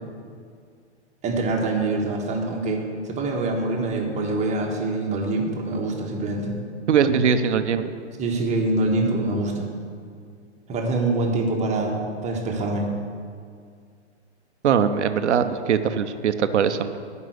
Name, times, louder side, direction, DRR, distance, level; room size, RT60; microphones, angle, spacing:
voice 1, 1.2-6.5 8.2-9.7 10.7-12.9, right 2 dB, 20° right, 1 dB, 1.4 m, -25 dB
voice 2, 6.9-7.9 14.6-17.0, right 7 dB, 75° right, 10 dB, 0.8 m, -21 dB
11.0 x 5.5 x 7.9 m, 2.2 s
hypercardioid pair, 125°, 35 cm